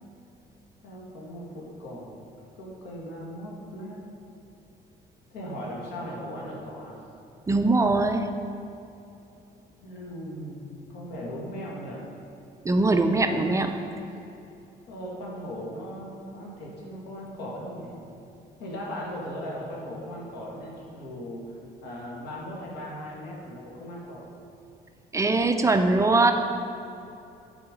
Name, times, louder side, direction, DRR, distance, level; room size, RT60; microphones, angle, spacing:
voice 1, 0.8-2.2 2.6-4.0 5.3-7.0 9.8-12.1 12.7-13.7 14.9-18.0 18.6-21.5 21.8-24.3, equal, 85° left, -3 dB, 1.9 m, -38 dB
voice 2, 7.5-8.3 12.6-13.7 25.1-26.3, right 2 dB, 20° right, 6 dB, 0.4 m, -21 dB
8.5 x 4.8 x 5.2 m, 2.8 s
cardioid pair, 110°, 17 cm